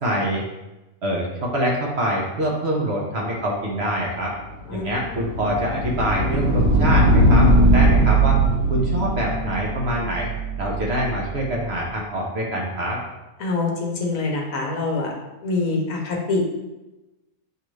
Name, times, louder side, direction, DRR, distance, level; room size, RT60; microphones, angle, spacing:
voice 1, 0.0-0.5 1.0-4.3 4.7-8.4 8.7-10.3 10.6-13.0, equal, 55° right, -2 dB, 0.9 m, -25 dB
sound 1, 4.4-11.3, right 1 dB, 70° right, 1.3 m, -19 dB
voice 2, 13.4-15.1 15.4-16.4, left 3 dB, 70° left, 0 dB, 1.1 m, -25 dB
6.8 x 2.5 x 3.1 m, 1.0 s
omnidirectional pair, 1.6 m